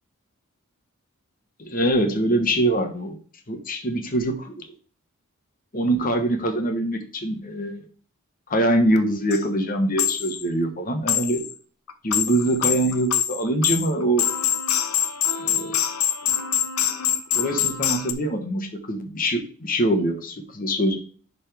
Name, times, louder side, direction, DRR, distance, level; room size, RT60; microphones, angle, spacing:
voice 1, 1.6-3.2 3.5-4.7 5.7-7.9 8.5-11.4 12.0-14.3 15.4-15.8 17.3-21.0, right 1 dB, 40° left, 6 dB, 1.2 m, -24 dB
sound 1, 9.0-9.1 9.3-9.4 10.0-10.4 11.1-11.5 11.9-18.1, left 10 dB, 80° left, 0.8 m, -24 dB
10.5 x 4.1 x 3.4 m, 0.42 s
head